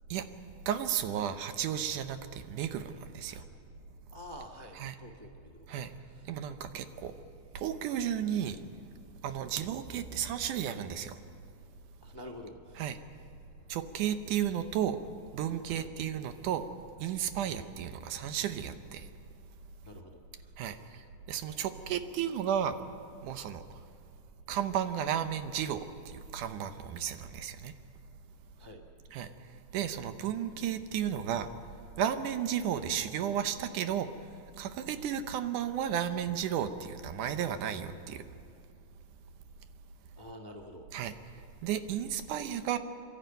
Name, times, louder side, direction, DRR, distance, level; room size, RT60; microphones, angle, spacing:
voice 1, 0.7-3.4 4.8-5.0 5.7-5.9 6.3-7.1 7.5-8.6 9.2-11.2 12.8-13.0 13.7-15.0 15.3-16.7 17.0-19.1 20.6-20.8 21.3-22.8 23.2-23.6 24.5-27.7 29.1-29.3 29.7-31.5 32.0-34.1 34.6-38.2 40.9-41.1 41.6-42.8, right 9 dB, 75° right, 9 dB, 2.4 m, -33 dB
voice 2, 4.1-6.4 7.1-7.2 12.0-12.9 15.7-15.9 17.4-17.6 19.8-20.9 28.6-28.8 40.2-40.9, left 1 dB, 25° left, 1 dB, 0.5 m, -49 dB
28.5 x 12.5 x 9.1 m, 2.5 s
omnidirectional pair, 3.7 m